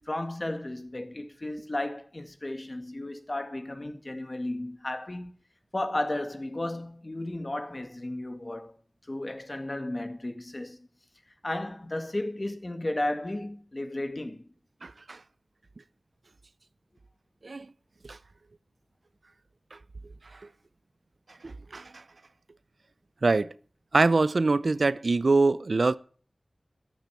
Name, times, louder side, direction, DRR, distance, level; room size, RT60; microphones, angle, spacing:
voice 1, 0.1-5.4 5.7-8.7 9.1-10.9 11.4-14.5, left 1 dB, 40° left, 2.0 m, -34 dB
voice 2, 14.8-15.2 17.4-17.7 18.0-18.2 19.7-19.8 20.3-20.4 21.4-22.0 23.2-23.5 23.9-26.0, right 3 dB, 75° right, 0.6 m, -24 dB
13.5 x 10.0 x 5.7 m
wide cardioid pair, 65°, 0 cm